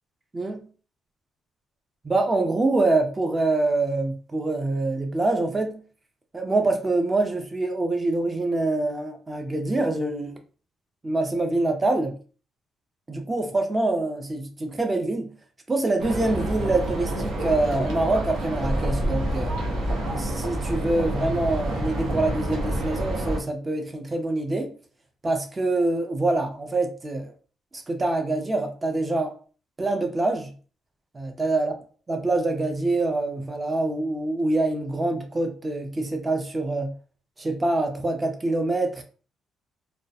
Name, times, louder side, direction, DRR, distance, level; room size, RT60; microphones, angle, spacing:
voice 1, 0.3-0.7 2.0-5.8 6.3-10.4 11.0-12.2 13.1-15.4 15.7-19.6 20.0-24.7 25.2-27.3 27.7-29.3 29.8-30.5 31.1-31.7 32.1-37.0 37.4-39.0, right 2 dB, 25° right, 0.4 m, -25 dB
sound 1, 16.0-23.4, right 1 dB, 85° right, 0.7 m, -28 dB
2.2 x 2.1 x 2.6 m
cardioid pair, 90°, 0 cm